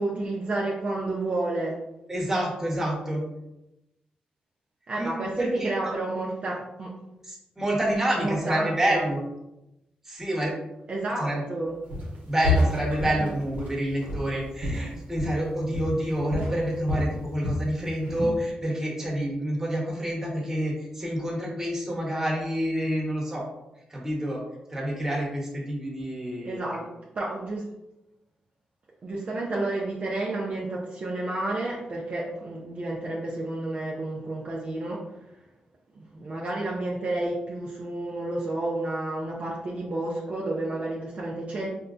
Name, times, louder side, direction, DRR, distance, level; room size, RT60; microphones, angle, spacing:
voice 1, 0.0-1.8 4.9-6.9 8.2-9.1 10.9-11.7 26.4-26.9 27.1-27.6 29.0-35.1 35.9-41.7, right 2 dB, 50° right, -3 dB, 0.5 m, -30 dB
voice 2, 2.1-3.2 5.0-5.9 7.2-9.2 10.0-10.5 11.2-11.4 12.3-23.4 23.9-24.4 24.7-26.8, right 1 dB, 15° right, -4 dB, 1.2 m, -28 dB
Walk footsteps, 11.9-12.2 12.4-15.5 15.7-16.0 16.3-17.7 18.0-18.4, left 2 dB, 75° right, 0.9 m, -28 dB
4.4 x 2.2 x 2.5 m, 0.92 s
cardioid pair, 85°, 3 cm